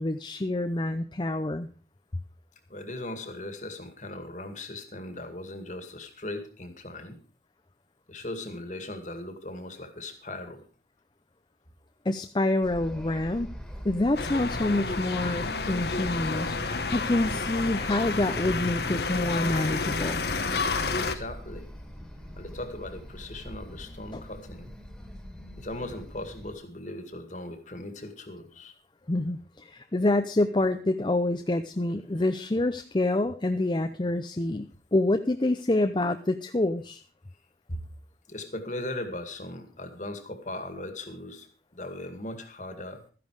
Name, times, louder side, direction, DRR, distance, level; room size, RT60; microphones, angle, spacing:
voice 1, 0.0-1.7 12.1-13.5 13.8-20.2 24.1-24.2 29.1-37.0, left 2 dB, 25° left, 8 dB, 0.6 m, -27 dB
voice 2, 2.7-7.2 8.1-10.6 20.9-21.7 22.4-24.7 25.5-28.7 37.7-37.8 38.3-41.5 41.7-43.0, left 1 dB, 45° left, 7 dB, 2.1 m, -38 dB
sound 1, 12.6-26.5, equal, 5° left, 2.0 m, -42 dB
sound 2, 14.2-21.2, left 4 dB, 65° left, 1.1 m, -30 dB
13.5 x 10.5 x 4.8 m, 0.38 s
head